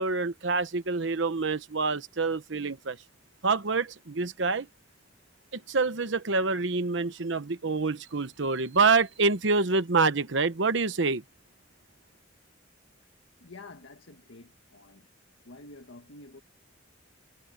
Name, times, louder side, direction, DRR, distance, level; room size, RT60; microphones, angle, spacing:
voice 1, 0.0-3.0 3.4-4.7 5.5-11.2, right 4 dB, 70° right, 1.0 m, -26 dB
voice 2, 13.4-15.1 15.4-16.4, left 2 dB, 75° left, 1.6 m, -49 dB
head